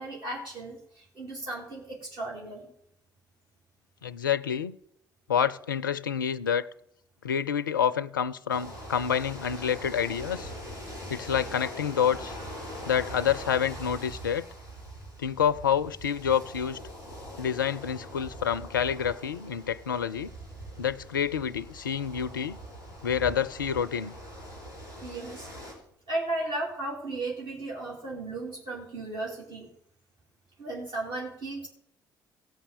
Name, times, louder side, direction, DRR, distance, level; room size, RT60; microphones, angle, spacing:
voice 1, 0.0-2.7 25.0-25.5 26.1-29.7 30.6-31.7, right 2 dB, 45° right, 3.2 m, -35 dB
voice 2, 4.0-4.8 5.3-6.7 7.2-10.5 11.1-12.4 12.9-14.5 15.2-16.8 17.4-20.3 20.8-22.6 23.0-24.1, left 8 dB, 85° left, 0.4 m, -28 dB
sound 1, 8.5-25.7, equal, 85° right, 3.4 m, -42 dB
16.5 x 5.6 x 7.3 m
figure-of-eight pair, 45°, 11 cm